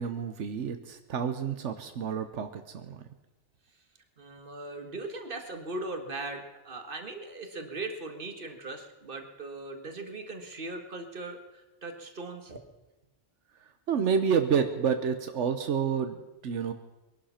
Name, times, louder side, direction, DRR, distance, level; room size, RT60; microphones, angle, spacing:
voice 1, 0.0-3.0 13.9-16.2 16.4-16.7, right 7 dB, 85° right, 8 dB, 1.2 m, -29 dB
voice 2, 4.2-12.6, right 2 dB, 50° right, 5 dB, 1.8 m, -39 dB
21.5 x 11.5 x 5.8 m, 1.1 s
omnidirectional pair, 1.2 m